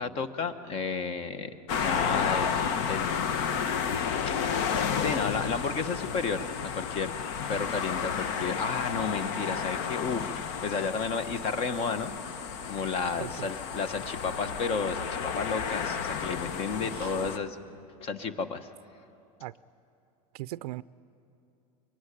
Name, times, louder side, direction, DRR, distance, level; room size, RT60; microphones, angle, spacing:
voice 1, 0.0-1.5 1.8-2.5 2.9-3.4 4.3-4.4 5.0-7.1 7.5-10.3 10.6-12.3 12.7-17.6 18.0-18.7, left 5 dB, 30° left, 11 dB, 1.1 m, -32 dB
sound 1, 1.7-17.4, left 7 dB, 50° left, 1.1 m, -32 dB
voice 2, 13.2-13.5 16.9-17.1 19.4-19.5 20.3-20.8, right 17 dB, 85° right, 16 dB, 0.5 m, -38 dB
23.5 x 22.5 x 10.0 m, 2.7 s
supercardioid pair, 160°, 19 cm